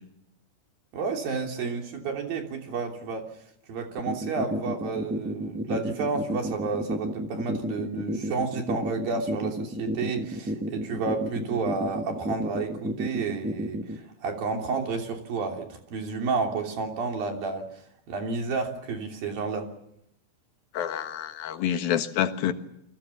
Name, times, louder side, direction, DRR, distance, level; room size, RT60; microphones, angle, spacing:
voice 1, 0.9-3.3 3.7-19.7, right 4 dB, 70° right, 3 dB, 4.9 m, -31 dB
sound 1, 4.0-14.0, equal, 10° right, 0.5 m, -31 dB
voice 2, 20.7-22.5, left 10 dB, 75° left, 8 dB, 3.2 m, -27 dB
30.0 x 23.5 x 7.1 m, 0.76 s
omnidirectional pair, 4.4 m